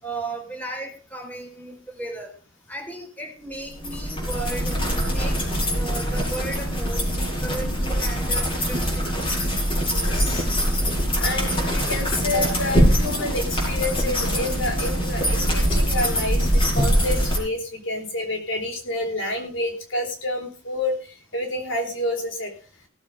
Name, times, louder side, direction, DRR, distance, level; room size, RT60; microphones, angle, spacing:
voice 1, 0.0-2.3 2.7-4.8 5.1-5.4 5.7-7.1 7.4-9.1, right 2 dB, 10° left, 1 dB, 3.9 m, -35 dB
sound 1, 3.7-17.4, equal, 25° left, 6.0 m, -23 dB
voice 2, 9.5-10.5 11.2-22.5, left 1 dB, 70° left, 3 dB, 3.8 m, -29 dB
17.5 x 7.4 x 5.4 m, 0.37 s
head